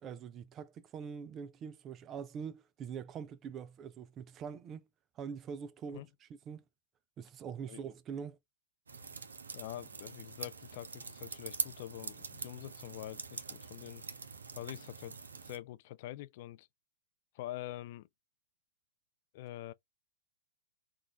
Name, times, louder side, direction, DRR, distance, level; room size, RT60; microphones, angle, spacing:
voice 1, 0.0-4.8 5.2-6.6 7.2-8.4, right 7 dB, 25° right, 0.4 m, -44 dB
sound 1, 8.9-15.6, right 4 dB, 80° right, 0.7 m, -44 dB
voice 2, 9.5-14.0 14.5-15.1 15.4-16.7 17.3-18.1 19.3-19.7, left 14 dB, 50° left, 0.3 m, -45 dB
3.6 x 2.4 x 3.4 m
hypercardioid pair, 120°, 0 cm